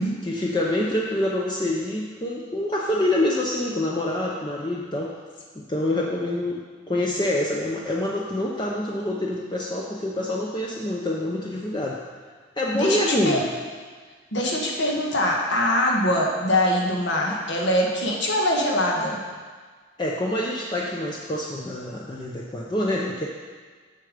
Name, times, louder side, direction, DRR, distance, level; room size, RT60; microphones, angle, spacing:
voice 1, 0.2-5.1 5.6-12.0 12.6-13.5 20.0-23.3, left 1 dB, 25° left, -3 dB, 0.6 m, -26 dB
voice 2, 12.7-13.4 14.3-19.2, left 1 dB, 70° left, -1 dB, 1.4 m, -23 dB
6.9 x 6.8 x 5.1 m, 1.5 s
head